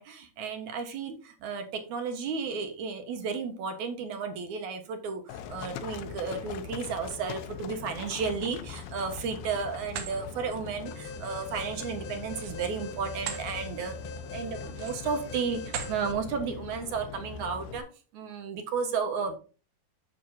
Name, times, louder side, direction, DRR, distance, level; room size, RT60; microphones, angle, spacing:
voice 1, 0.0-13.9 14.3-17.9 18.1-19.4, right 5 dB, 60° right, 6 dB, 2.4 m, -33 dB
Livestock farm animals working animals, 5.3-17.8, left 7 dB, 85° left, 2.8 m, -41 dB
sound 1, 8.8-9.4 9.8-10.2 12.3-13.5 13.9-14.1 14.7-15.1 15.6-16.0, right 7 dB, 85° right, 3.5 m, -39 dB
Alarm, 10.9-16.1, left 2 dB, 60° left, 1.9 m, -44 dB
9.1 x 7.4 x 2.8 m, 0.34 s
omnidirectional pair, 4.4 m